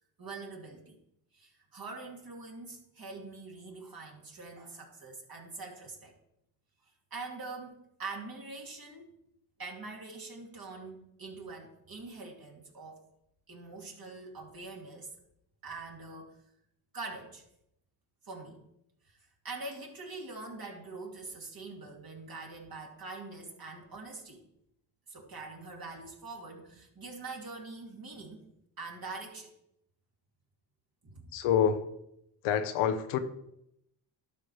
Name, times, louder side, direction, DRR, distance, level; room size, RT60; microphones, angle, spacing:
voice 1, 0.2-1.0 1.3-6.1 7.1-9.1 9.6-13.1 13.5-15.1 15.6-16.4 16.9-17.4 18.2-18.6 19.1-19.2 19.4-24.4 25.1-28.5 28.8-29.5 31.0-31.3, right 3 dB, 45° right, 0 dB, 2.6 m, -44 dB
voice 2, 31.3-31.9 32.4-33.2, left 8 dB, 85° left, 9 dB, 0.9 m, -27 dB
12.0 x 4.7 x 4.6 m, 0.79 s
supercardioid pair, 60°, 49 cm